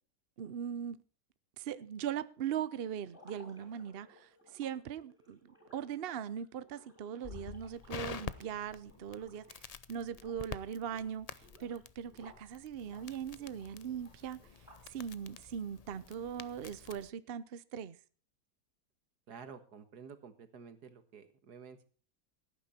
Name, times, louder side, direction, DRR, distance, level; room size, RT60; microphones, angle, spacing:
voice 1, 0.4-1.0 1.6-14.4 14.9-18.0, right 8 dB, 50° right, 0.8 m, -40 dB
sound 1, 3.0-9.7 10.0-10.5 10.8-12.5 12.8-15.0, left 1 dB, ahead, 6.5 m, -60 dB
Crackle, 7.2-17.1, left 6 dB, 65° left, 0.3 m, -48 dB
voice 2, 19.3-21.8, right 6 dB, 80° right, 2.0 m, -51 dB
17.0 x 9.7 x 4.3 m
omnidirectional pair, 1.7 m